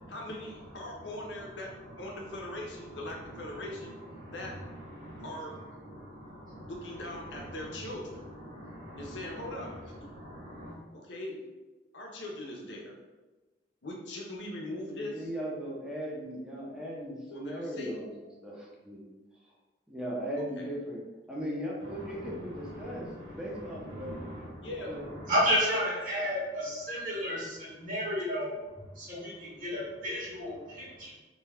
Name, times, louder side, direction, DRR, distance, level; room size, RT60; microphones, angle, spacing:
voice 1, 0.1-4.0 4.3-4.7 5.2-5.6 6.7-8.3 9.0-10.1 10.9-11.4 11.9-13.0 13.8-15.3 17.3-18.2 20.4-20.7 24.6-25.0, left 1 dB, 85° left, 0 dB, 0.6 m, -41 dB
voice 2, 5.0-5.3 5.9-6.7 7.6-7.7 8.4-9.7 10.1-10.8 21.9-24.7 25.2-28.5 28.9-31.1, equal, 50° right, -7 dB, 1.3 m, -34 dB
voice 3, 14.9-18.1 18.4-19.0 19.9-21.0 21.3-23.1 23.3-24.2 24.9-25.0 26.2-26.3, equal, 5° right, -5 dB, 0.6 m, -37 dB
2.7 x 2.2 x 3.3 m, 1.2 s
head